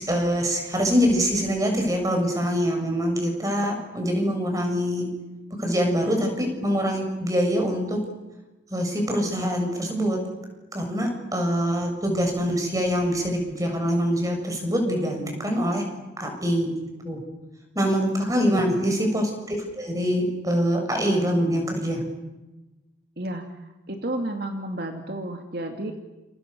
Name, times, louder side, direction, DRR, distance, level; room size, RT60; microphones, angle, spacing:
voice 1, 0.0-5.1 5.6-8.0 8.7-10.2 10.7-15.8 16.2-16.7 17.0-17.2 17.8-22.0, equal, 20° right, 3 dB, 7.4 m, -24 dB
voice 2, 23.2-23.6 23.9-25.9, right 1 dB, 55° right, 4 dB, 2.5 m, -32 dB
30.0 x 28.5 x 6.9 m, 1.1 s
head